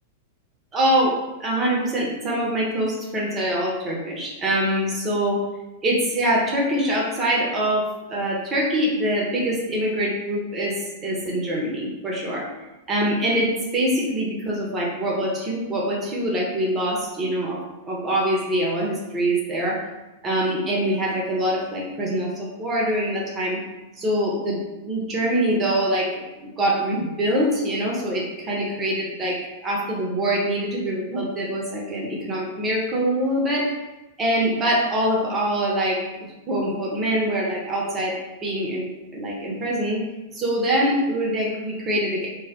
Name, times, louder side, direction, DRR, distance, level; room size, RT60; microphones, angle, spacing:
voice 1, 0.7-1.1 1.4-5.4 5.8-10.7 11.0-12.4 12.9-17.6 17.9-19.8 20.2-23.6 24.0-24.6 24.8-29.4 29.6-33.6 34.2-38.1 38.4-38.9 39.1-40.0 40.3-42.3, right 1 dB, 25° right, -3 dB, 0.6 m, -24 dB
2.2 x 2.1 x 2.7 m, 1.0 s
figure-of-eight pair, 95°, 0 cm